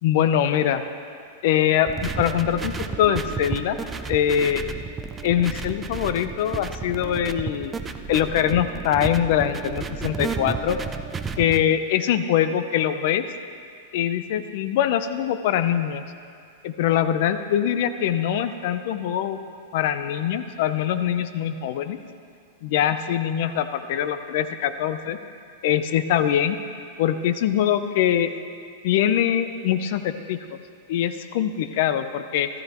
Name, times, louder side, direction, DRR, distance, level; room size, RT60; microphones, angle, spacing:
voice 1, 0.0-0.8 1.4-3.8 4.1-4.6 5.2-7.8 8.1-10.8 11.4-13.2 13.9-16.0 16.6-19.4 19.7-22.0 22.6-25.2 25.6-26.6 27.0-28.3 28.8-30.6 30.9-32.5, left 10 dB, 45° left, 10 dB, 0.6 m, -23 dB
sound 1, 1.9-11.6, right 5 dB, 10° right, 0.3 m, -32 dB
14.5 x 14.0 x 3.0 m, 2.2 s
supercardioid pair, 170°, 0 cm